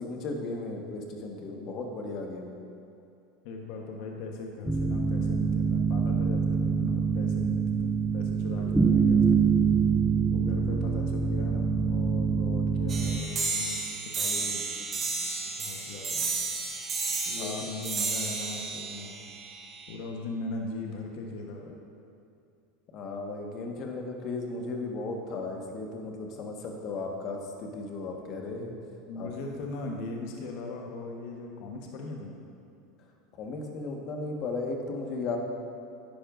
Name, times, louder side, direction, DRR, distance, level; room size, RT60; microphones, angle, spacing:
voice 1, 0.0-2.5 17.4-17.6 22.9-28.8 29.1-29.3 33.4-35.4, left 3 dB, 50° left, 1 dB, 1.4 m, -35 dB
voice 2, 3.4-9.3 10.3-13.8 14.1-14.6 15.5-16.3 17.3-19.2 19.9-21.8 29.1-32.4, left 3 dB, 65° left, 1 dB, 1.1 m, -39 dB
sound 1, 4.7-13.2, right 5 dB, 5° right, 0.5 m, -25 dB
sound 2, 12.9-19.9, right 4 dB, 35° right, 1.5 m, -32 dB
10.5 x 10.0 x 2.6 m, 2.5 s
supercardioid pair, 105°, 0 cm